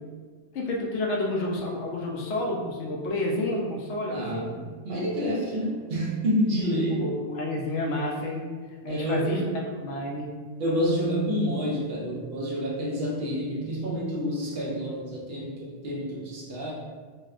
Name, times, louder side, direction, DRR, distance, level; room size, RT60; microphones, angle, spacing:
voice 1, 0.5-4.5 7.0-8.5 8.8-10.4, left 1 dB, 70° left, -2 dB, 0.8 m, -30 dB
voice 2, 4.1-7.1 8.9-9.5 10.6-16.7, equal, 60° right, -5 dB, 0.8 m, -28 dB
4.1 x 2.2 x 2.3 m, 1.5 s
omnidirectional pair, 1.3 m